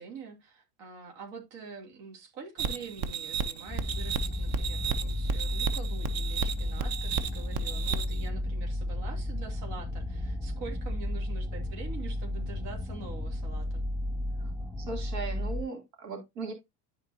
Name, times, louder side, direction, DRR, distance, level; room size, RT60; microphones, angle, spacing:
voice 1, 0.0-13.8, right 4 dB, 60° right, 2.7 m, -45 dB
sound 1, 2.6-8.3, right 6 dB, 45° right, 1.1 m, -33 dB
sound 2, 3.7-15.6, left 1 dB, 5° right, 2.0 m, -33 dB
voice 2, 14.8-16.5, right 4 dB, 85° right, 3.0 m, -38 dB
13.0 x 4.5 x 2.7 m
hypercardioid pair, 95°, 47 cm